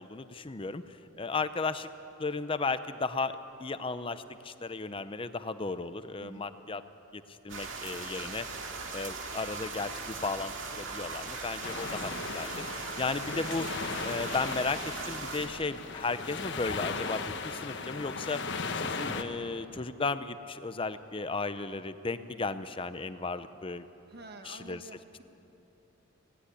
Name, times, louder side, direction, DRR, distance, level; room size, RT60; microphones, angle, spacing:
voice 1, 0.0-1.9 2.2-6.8 7.1-8.5 8.9-13.7 14.0-14.8 15.1-18.4 18.7-23.8 24.4-24.8, left 3 dB, 25° left, 12 dB, 0.6 m, -35 dB
sound 1, 7.5-15.5, right 4 dB, 70° right, 2.3 m, -39 dB
sound 2, 11.6-19.2, left 4 dB, 60° left, 1.3 m, -37 dB
voice 2, 24.1-25.2, right 2 dB, 50° right, 6 dB, 1.3 m, -48 dB
18.5 x 17.5 x 10.0 m, 3.0 s
head